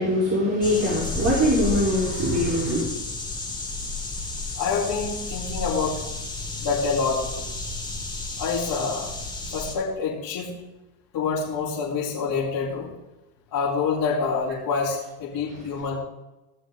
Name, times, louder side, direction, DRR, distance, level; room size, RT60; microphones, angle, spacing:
voice 1, 0.0-2.8, equal, 30° right, -6 dB, 4.4 m, -22 dB
sound 1, 0.6-9.7, left 3 dB, 10° left, 3.4 m, -32 dB
voice 2, 4.6-6.0 6.6-7.5 8.4-9.1 9.5-10.5 11.1-12.9 13.5-16.0, left 5 dB, 50° left, -10 dB, 4.5 m, -26 dB
17.5 x 7.0 x 4.0 m, 0.99 s
hypercardioid pair, 85°, 48 cm